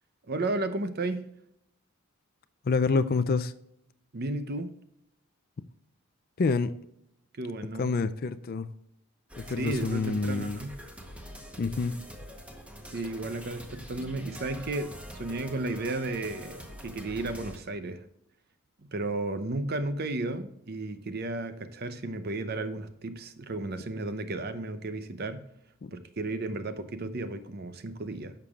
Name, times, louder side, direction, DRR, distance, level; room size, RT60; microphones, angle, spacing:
voice 1, 0.3-1.3 4.1-4.7 7.3-7.9 9.6-10.8 12.9-18.0 18.9-25.5 25.9-28.3, right 2 dB, 45° right, 0.7 m, -33 dB
voice 2, 2.7-3.5 6.4-6.7 7.8-8.7 9.4-10.6 11.6-12.0 25.8-25.9, left 4 dB, 45° left, 0.4 m, -27 dB
sound 1, 9.3-17.6, equal, 5° right, 0.9 m, -45 dB
11.0 x 6.8 x 2.4 m
head